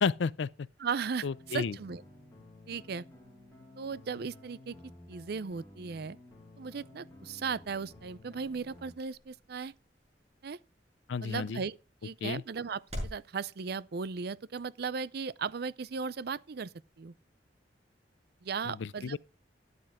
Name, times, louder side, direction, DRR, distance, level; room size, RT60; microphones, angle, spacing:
voice 1, 0.0-0.7 1.2-1.8 11.1-11.6 12.2-12.4 18.7-19.2, left 5 dB, 85° left, 0.5 m, -32 dB
voice 2, 0.8-2.0 2.7-3.0 3.8-4.8 5.1-6.2 6.6-9.7 10.4-10.6 11.2-11.8 12.0-17.1 18.4-19.2, right 5 dB, 60° right, 0.5 m, -36 dB
sound 1, 1.3-8.9, left 1 dB, 15° left, 3.7 m, -54 dB
sound 2, 7.0-13.3, equal, 35° right, 6.6 m, -48 dB
13.0 x 9.9 x 3.6 m
head